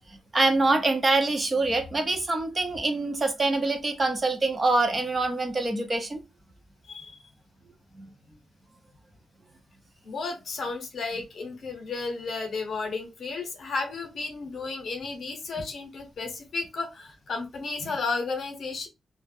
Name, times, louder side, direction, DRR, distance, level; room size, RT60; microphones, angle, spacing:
voice 1, 0.3-6.2 8.0-8.1, right 2 dB, 25° right, 0.4 m, -25 dB
voice 2, 6.9-7.2 10.0-18.9, left 3 dB, 50° left, 0.7 m, -33 dB
2.3 x 2.1 x 3.3 m
wide cardioid pair, 175°, 0 cm